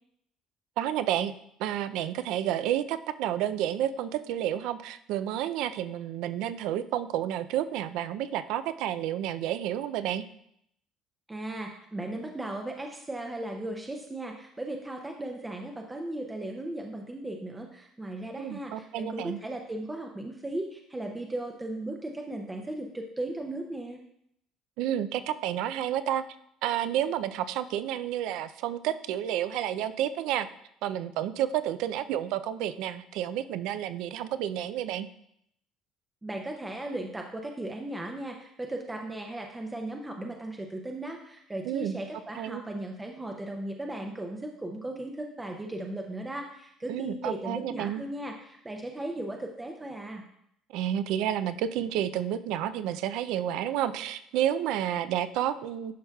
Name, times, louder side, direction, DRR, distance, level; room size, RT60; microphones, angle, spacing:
voice 1, 0.8-1.3 1.6-10.2 18.4-19.4 24.8-26.2 26.6-30.5 30.8-35.1 41.7-42.0 42.4-42.6 46.9-48.0 50.7-55.9, right 11 dB, 75° right, 13 dB, 0.4 m, -30 dB
voice 2, 11.3-24.0 36.2-50.2, right 1 dB, 10° right, 2 dB, 0.5 m, -36 dB
11.0 x 5.5 x 2.3 m, 0.74 s
cardioid pair, 145°, 0 cm